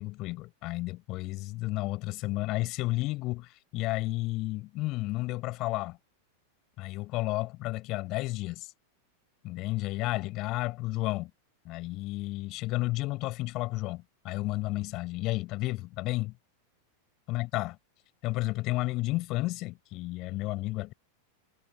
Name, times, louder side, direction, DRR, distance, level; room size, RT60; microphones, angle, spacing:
voice 1, 0.0-6.0 6.8-8.7 9.4-11.3 11.6-16.3 17.3-17.8 18.2-20.9, left 20 dB, 40° left, 6.9 m, -32 dB
figure-of-eight pair, 90°, 0 cm